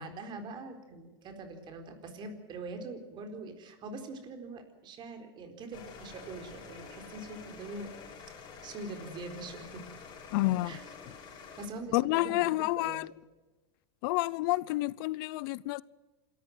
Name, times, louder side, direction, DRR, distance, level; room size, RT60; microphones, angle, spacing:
voice 1, 0.0-7.9 8.6-9.8 10.6-10.8 11.3-12.4 12.8-13.0, right 3 dB, 35° right, 4.2 m, -43 dB
sound 1, 5.7-11.7, left 5 dB, 35° left, 6.1 m, -48 dB
voice 2, 10.3-10.8 11.9-13.1 14.0-15.8, left 20 dB, 65° left, 0.6 m, -29 dB
27.5 x 13.5 x 7.8 m
supercardioid pair, 130°, 13 cm